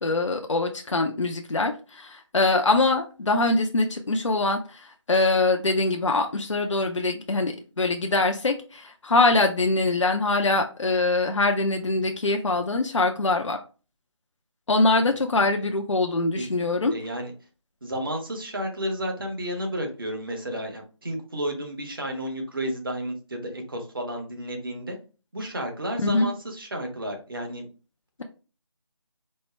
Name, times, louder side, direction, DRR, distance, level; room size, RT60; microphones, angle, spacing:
voice 1, 0.0-13.6 14.7-16.9 26.0-26.3, left 2 dB, 70° left, 4 dB, 0.5 m, -23 dB
voice 2, 16.3-17.3 17.8-25.0 25.3-27.6, equal, 45° right, 3 dB, 1.0 m, -32 dB
4.3 x 2.0 x 3.2 m, 0.35 s
figure-of-eight pair, 160°, 16 cm